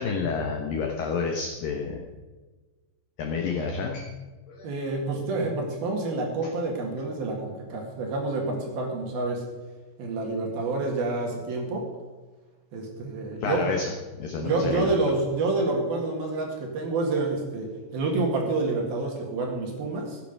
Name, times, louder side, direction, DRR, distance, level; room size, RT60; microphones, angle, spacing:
voice 1, 0.0-2.0 3.2-4.1 4.5-4.7 13.4-13.9 14.2-14.9, left 5 dB, 75° left, 3 dB, 2.1 m, -29 dB
voice 2, 4.6-9.4 10.0-11.9 12.7-13.7 14.4-20.2, right 3 dB, 60° right, 1 dB, 3.3 m, -28 dB
15.0 x 9.7 x 5.4 m, 1.3 s
omnidirectional pair, 5.6 m